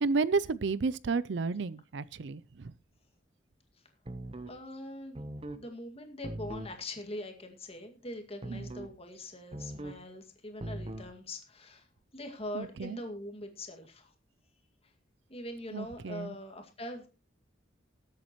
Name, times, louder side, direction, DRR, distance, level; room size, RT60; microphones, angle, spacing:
voice 1, 0.0-2.7 8.5-8.7 12.5-13.0 15.7-16.3, right 4 dB, 65° right, 0.5 m, -32 dB
sound 1, 4.1-4.6 5.1-5.6 6.2-6.8 8.4-9.0 9.5-10.0 10.6-11.1, right 1 dB, 30° right, 0.8 m, -40 dB
voice 2, 4.5-5.2 5.5-11.9 12.1-14.1 15.3-17.1, left 1 dB, 30° left, 2.1 m, -42 dB
20.0 x 8.4 x 3.0 m
head